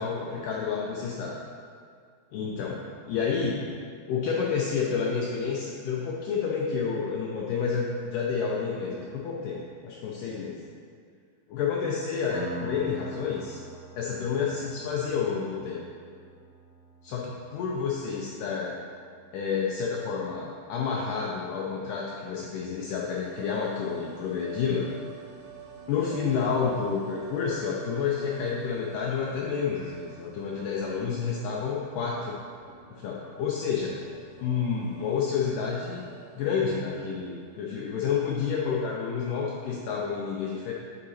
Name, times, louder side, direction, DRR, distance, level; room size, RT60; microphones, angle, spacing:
voice 1, 0.0-1.4 2.3-2.8 3.1-3.6 4.1-10.6 11.5-13.6 14.0-15.8 17.0-18.8 19.3-24.9 25.9-32.3 32.9-34.0 34.4-36.1 36.4-40.7, left 6 dB, 85° left, -3 dB, 1.9 m, -29 dB
Piano, 12.3-19.7, equal, 80° right, 2.4 m, -44 dB
sound 1, 23.1-38.0 38.2-38.3, right 7 dB, 65° right, 2.0 m, -49 dB
8.3 x 3.8 x 4.1 m, 2.1 s
omnidirectional pair, 4.4 m